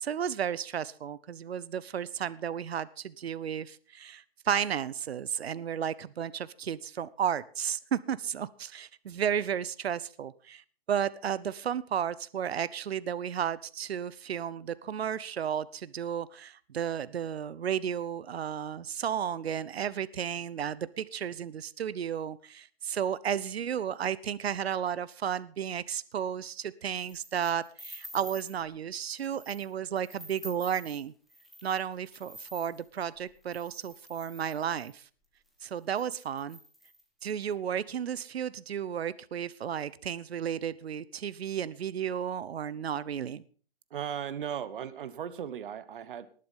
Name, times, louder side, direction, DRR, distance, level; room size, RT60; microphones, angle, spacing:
voice 1, 0.0-10.6 10.9-31.1 31.6-35.0 35.6-36.6 37.2-43.4, right 8 dB, 80° right, 19 dB, 0.8 m, -33 dB
sound 1, 26.9-28.6 29.1-29.7 30.0-35.0 35.6-35.7 35.9-37.4, equal, ahead, 1.6 m, -49 dB
voice 2, 43.9-46.3, right 8 dB, 55° right, 14 dB, 1.3 m, -37 dB
19.5 x 7.7 x 5.5 m, 0.41 s
hypercardioid pair, 160°, 31 cm